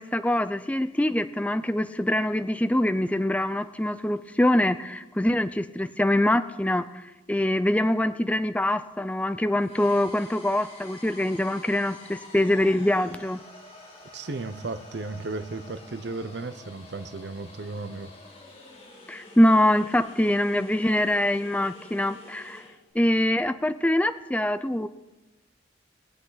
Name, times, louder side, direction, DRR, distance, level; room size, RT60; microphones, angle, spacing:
voice 1, 0.0-13.4 19.1-22.6 22.9-24.9, left 1 dB, 5° left, 10 dB, 0.4 m, -24 dB
sound 1, 9.6-22.8, left 2 dB, 35° left, 3.1 m, -47 dB
voice 2, 14.1-18.1, right 3 dB, 60° right, 11 dB, 0.7 m, -35 dB
22.0 x 8.3 x 4.0 m, 1.0 s
head